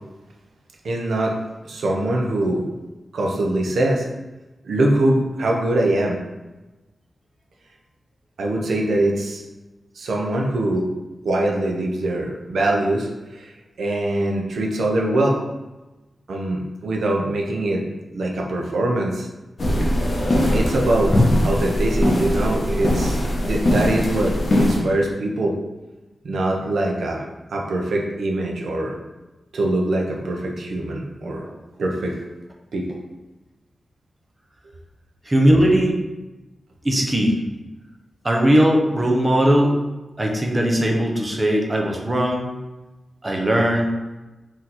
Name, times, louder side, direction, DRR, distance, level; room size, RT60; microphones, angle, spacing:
voice 1, 0.8-1.4 1.6-2.6 3.1-4.0 4.6-6.2 8.4-9.4 10.0-10.9 11.2-13.5 13.8-15.4 16.3-17.8 18.1-19.3 20.5-21.2 21.4-25.6 26.2-27.2 27.5-28.9 29.5-31.5 31.8-32.1 32.7-32.9, right 1 dB, 80° right, 0 dB, 0.8 m, -23 dB
sound 1, 19.6-24.8, left 1 dB, 35° left, 0.9 m, -20 dB
voice 2, 35.3-36.0 36.8-37.4 38.2-39.8 40.2-42.5 43.2-43.9, equal, 20° right, 0 dB, 0.7 m, -19 dB
4.3 x 3.0 x 4.0 m, 1.1 s
wide cardioid pair, 160°, 0 cm